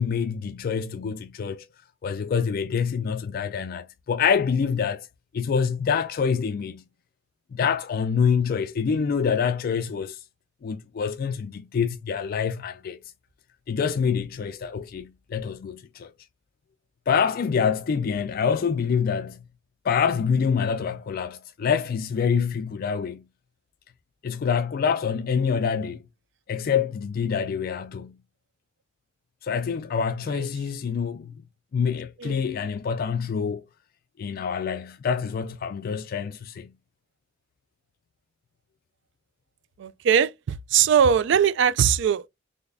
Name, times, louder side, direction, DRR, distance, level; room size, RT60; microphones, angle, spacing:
voice 1, 0.0-1.7 2.0-5.1 5.3-6.8 7.5-10.2 10.6-13.0 13.7-16.1 17.1-19.4 19.8-23.2 24.2-26.0 26.5-28.2 29.4-31.3 31.7-33.6 34.2-36.7, left 6 dB, 50° left, 0.3 m, -26 dB
voice 2, 39.8-42.3, right 8 dB, 65° right, 0.3 m, -21 dB
3.9 x 3.3 x 2.5 m
head